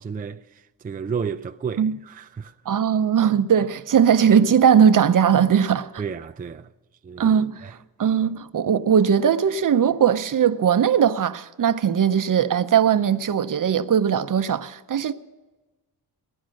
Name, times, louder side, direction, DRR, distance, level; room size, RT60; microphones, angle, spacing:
voice 1, 0.0-2.5 6.0-6.7 7.0-7.3 7.6-7.7, right 6 dB, 25° right, 0.4 m, -32 dB
voice 2, 2.7-5.9 7.2-15.1, right 8 dB, 55° right, 0.7 m, -19 dB
17.5 x 12.0 x 6.4 m
wide cardioid pair, 105°, 38 cm